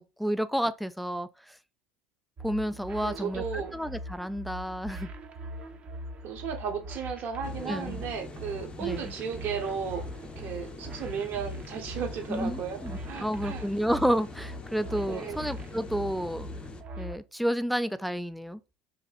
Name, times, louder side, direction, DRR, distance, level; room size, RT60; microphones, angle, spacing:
voice 1, 0.0-1.6 2.4-5.1 7.6-8.0 8.8-9.1 12.3-16.5 17.0-18.6, equal, ahead, 0.3 m, -31 dB
sound 1, 2.4-17.2, equal, 35° right, 0.8 m, -41 dB
voice 2, 3.0-3.7 6.2-10.0 10.4-12.8 13.1-13.7 15.1-15.4, right 7 dB, 55° right, 1.2 m, -34 dB
sound 2, 7.4-16.8, left 3 dB, 25° left, 0.7 m, -44 dB
3.2 x 2.8 x 4.1 m
supercardioid pair, 95°, 4 cm